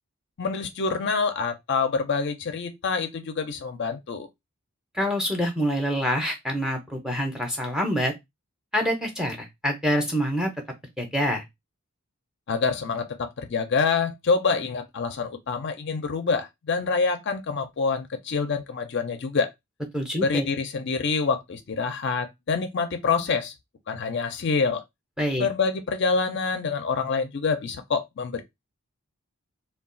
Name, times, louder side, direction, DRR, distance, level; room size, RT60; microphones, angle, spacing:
voice 1, 0.4-4.3 12.5-19.5 20.2-23.5 23.9-24.8 25.4-28.4, left 4 dB, 50° left, 0.4 m, -26 dB
voice 2, 4.9-8.1 8.7-10.5 11.0-11.4 19.9-20.5 25.2-25.5, equal, 5° right, 0.6 m, -26 dB
2.3 x 2.2 x 3.7 m
head